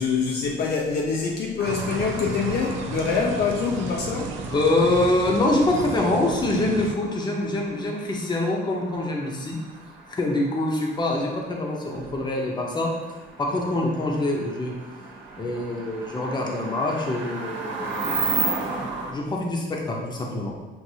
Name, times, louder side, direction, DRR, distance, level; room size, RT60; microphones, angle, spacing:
voice 1, 0.0-4.4, left 5 dB, 55° left, 0 dB, 0.5 m, -25 dB
sound 1, 1.6-19.1, right 3 dB, 70° right, 1.0 m, -35 dB
sound 2, 1.6-6.9, right 5 dB, 85° right, 0.5 m, -34 dB
voice 2, 4.5-9.6 10.1-12.9 13.4-14.7 15.4-18.3 19.1-20.5, left 2 dB, 20° left, -1 dB, 0.7 m, -25 dB
6.2 x 2.5 x 2.7 m, 1.2 s
cardioid pair, 135°, 20 cm